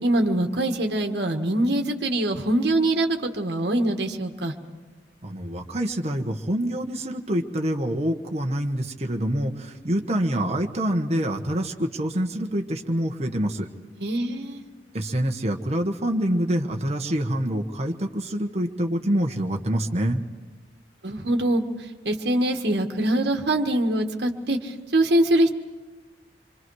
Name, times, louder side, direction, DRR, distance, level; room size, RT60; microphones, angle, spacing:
voice 1, 0.0-4.5 14.0-14.6 21.0-21.6 22.0-25.5, right 1 dB, 65° right, 4 dB, 1.6 m, -23 dB
voice 2, 5.2-13.7 14.9-20.2, right 1 dB, 35° right, 3 dB, 1.3 m, -26 dB
27.0 x 24.5 x 4.8 m, 1.3 s
head